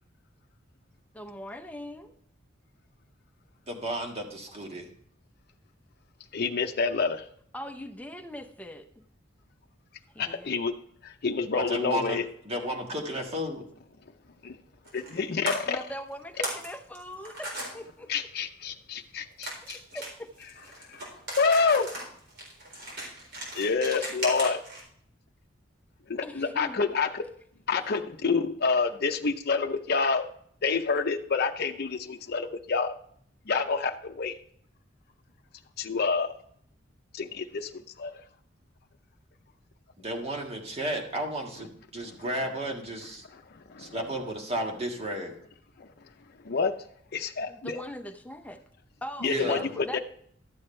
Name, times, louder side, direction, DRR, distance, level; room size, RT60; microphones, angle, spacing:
voice 1, 1.1-2.1 7.5-9.0 10.1-10.6 15.7-18.1 19.9-20.3 26.2-26.9 47.5-48.6 49.0-50.0, left 1 dB, 10° left, 6 dB, 0.7 m, -40 dB
voice 2, 3.7-4.8 11.5-12.2 12.4-13.6 40.0-43.2 43.8-45.3 49.2-49.7, equal, 35° right, 2 dB, 1.7 m, -33 dB
voice 3, 6.3-7.3 10.2-10.7 11.0-12.2 14.4-14.6 14.9-15.8 18.1-19.8 20.9-21.0 21.3-21.9 23.5-24.6 26.1-27.2 27.7-30.3 30.6-32.9 33.5-34.4 35.8-36.3 37.1-38.1 43.3-43.9 45.8-45.9 46.4-46.8 47.1-47.8 49.2-50.0, left 4 dB, 55° left, 5 dB, 0.7 m, -28 dB
sound 1, 14.9-15.2 15.5-15.6 16.1-16.7 16.9-17.7 19.4-24.8, right 1 dB, 60° right, 4.1 m, -37 dB
12.0 x 7.8 x 3.3 m, 0.64 s
head